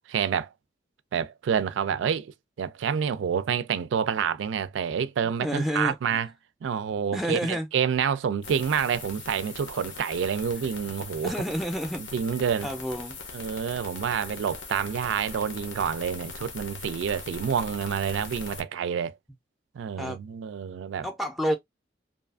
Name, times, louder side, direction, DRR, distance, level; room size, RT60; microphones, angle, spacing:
voice 1, 0.1-0.5 1.1-6.3 6.6-11.3 12.0-12.7 13.3-19.2 19.7-21.1, right 7 dB, 85° right, 0.3 m, -28 dB
voice 2, 5.4-5.9 7.1-7.7 11.2-12.0 12.6-13.2 20.0-20.2 21.0-21.5, equal, ahead, 0.4 m, -29 dB
sound 1, 8.4-18.6, left 4 dB, 85° left, 0.7 m, -41 dB
2.7 x 2.4 x 2.3 m
head